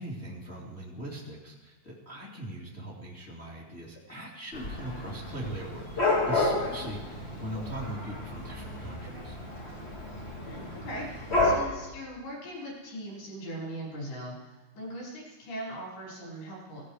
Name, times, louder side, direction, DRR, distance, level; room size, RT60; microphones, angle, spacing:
voice 1, 0.0-9.4, right 1 dB, 20° left, -3 dB, 1.7 m, -40 dB
Dog / Cat, 4.5-11.6, left 2 dB, 75° left, 0.6 m, -31 dB
voice 2, 10.4-16.9, right 1 dB, 55° left, -5 dB, 7.1 m, -40 dB
17.0 x 17.0 x 5.0 m, 1.1 s
omnidirectional pair, 5.9 m